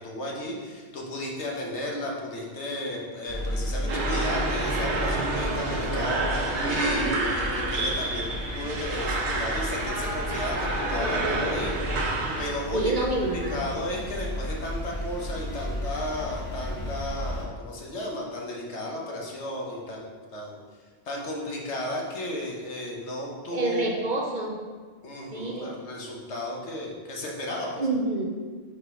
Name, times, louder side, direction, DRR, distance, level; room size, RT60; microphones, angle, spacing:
voice 1, 0.0-11.8 12.4-13.1 13.3-20.6 21.0-23.9 25.0-27.7, left 1 dB, 85° left, -1 dB, 1.3 m, -34 dB
sound 1, 3.3-17.4, left 1 dB, 60° left, 2.1 m, -34 dB
sound 2, 3.9-12.5, right 2 dB, 75° right, 1.1 m, -29 dB
voice 2, 12.7-13.6 23.5-24.6 25.3-25.8 27.8-28.3, right 2 dB, 50° right, 0 dB, 0.8 m, -27 dB
5.0 x 4.2 x 5.0 m, 1.5 s
omnidirectional pair, 1.1 m